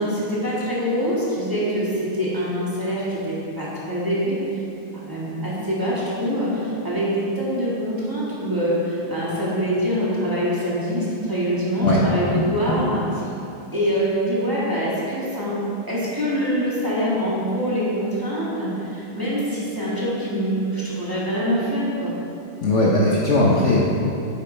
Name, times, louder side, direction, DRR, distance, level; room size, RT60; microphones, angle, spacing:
voice 1, 0.0-4.6 5.0-13.0 13.7-22.2, equal, 10° right, -9 dB, 1.6 m, -24 dB
voice 2, 22.6-23.8, left 2 dB, 75° left, -5 dB, 0.6 m, -18 dB
9.7 x 7.0 x 3.4 m, 2.8 s
omnidirectional pair, 2.4 m